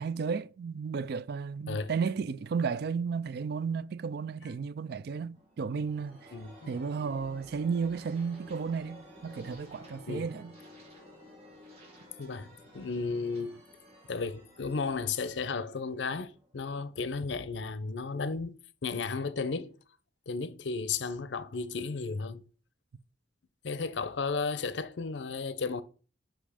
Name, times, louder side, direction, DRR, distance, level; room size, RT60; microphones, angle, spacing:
voice 1, 0.0-6.3 6.7-10.5, right 5 dB, 60° right, 0.4 m, -33 dB
sound 1, 5.3-16.8, left 1 dB, 35° right, 2.7 m, -53 dB
voice 2, 6.3-6.7 10.1-10.3 12.2-12.5 12.7-13.6 14.1-18.5 18.8-19.7 20.3-22.4 23.6-25.8, left 4 dB, 75° left, 0.6 m, -34 dB
6.1 x 5.2 x 4.9 m
head